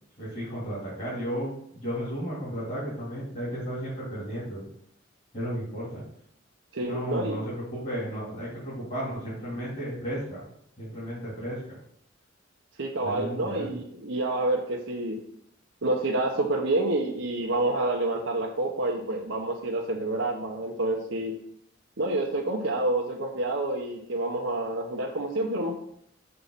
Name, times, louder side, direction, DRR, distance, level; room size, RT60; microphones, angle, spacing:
voice 1, 0.2-4.7 5.3-6.0 6.8-10.4 10.8-11.8 13.0-13.7, equal, 40° left, -9 dB, 3.2 m, -34 dB
voice 2, 6.7-7.4 12.8-15.2 15.8-21.3 22.0-25.7, right 2 dB, 85° right, -1 dB, 1.0 m, -28 dB
6.7 x 5.6 x 4.1 m, 0.69 s
head